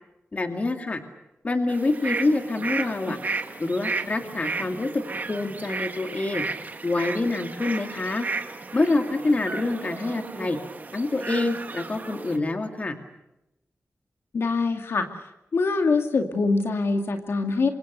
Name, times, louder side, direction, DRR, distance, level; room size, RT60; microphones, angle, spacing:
voice 1, 0.3-1.0 1.4-3.2 3.6-6.4 6.8-8.3 8.7-10.6 10.9-13.0, left 2 dB, 35° left, 6 dB, 2.3 m, -26 dB
sound 1, 1.7-12.4, right 4 dB, 40° right, 2.0 m, -34 dB
voice 2, 14.3-15.1 15.5-17.7, left 3 dB, 70° left, 5 dB, 2.3 m, -24 dB
27.5 x 25.0 x 6.8 m, 0.91 s
wide cardioid pair, 155°, 4 cm